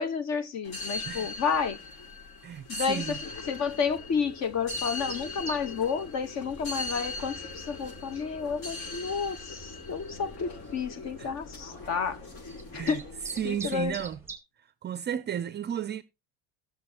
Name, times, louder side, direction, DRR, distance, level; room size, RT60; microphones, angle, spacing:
voice 1, 0.0-1.8 2.7-3.2 3.5-12.2 12.7-13.0 13.4-13.9, left 6 dB, 45° left, 1.1 m, -31 dB
sound 1, 0.6-14.1, left 3 dB, 85° left, 5.2 m, -40 dB
voice 2, 2.4-3.2 11.2-11.3 12.7-13.0 13.4-14.2 14.8-16.0, right 9 dB, 30° right, 0.5 m, -33 dB
sound 2, 4.6-14.4, right 3 dB, 5° right, 1.7 m, -46 dB
18.0 x 6.9 x 2.8 m
cardioid pair, 155°, 38 cm